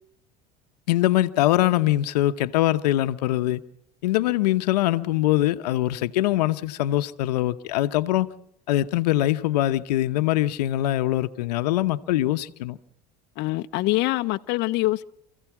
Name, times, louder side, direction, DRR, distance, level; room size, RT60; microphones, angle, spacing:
voice 1, 0.9-3.6 4.0-8.3 8.7-12.8, left 14 dB, 85° left, 1.0 m, -23 dB
voice 2, 13.4-15.0, left 18 dB, 60° left, 0.8 m, -24 dB
28.5 x 15.5 x 6.0 m
supercardioid pair, 90°, 20 cm